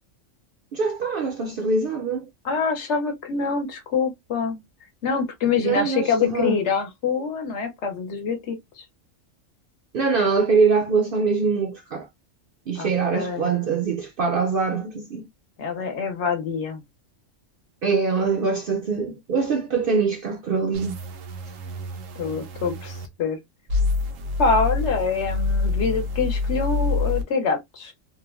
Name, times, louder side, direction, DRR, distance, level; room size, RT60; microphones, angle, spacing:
voice 1, 0.7-2.3 5.6-6.6 9.9-12.1 12.7-15.3 17.8-20.9, right 4 dB, 65° right, 0.5 m, -23 dB
voice 2, 2.4-4.6 5.0-8.8 12.8-13.5 15.6-16.8 22.2-23.4 24.4-27.9, left 5 dB, 65° left, 0.9 m, -25 dB
sound 1, 20.7-23.1 23.7-27.2, left 3 dB, 90° right, 1.0 m, -26 dB
3.1 x 2.1 x 2.3 m
omnidirectional pair, 1.3 m